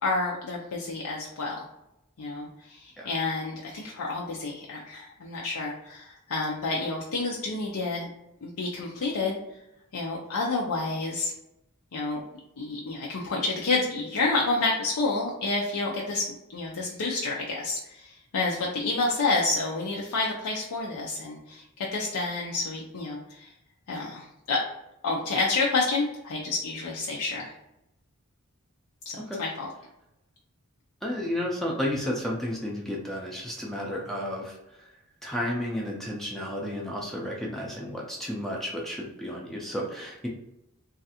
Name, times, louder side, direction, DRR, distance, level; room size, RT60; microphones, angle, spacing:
voice 1, 0.0-1.6 2.2-8.1 8.4-9.4 9.9-11.3 11.9-12.2 12.6-16.2 16.5-23.5 23.9-24.6 25.0-27.5 29.1-29.7, left 3 dB, 85° left, -2 dB, 0.5 m, -29 dB
voice 2, 31.0-34.9 35.2-40.3, left 1 dB, ahead, -2 dB, 0.4 m, -32 dB
3.1 x 2.4 x 2.8 m, 0.87 s
head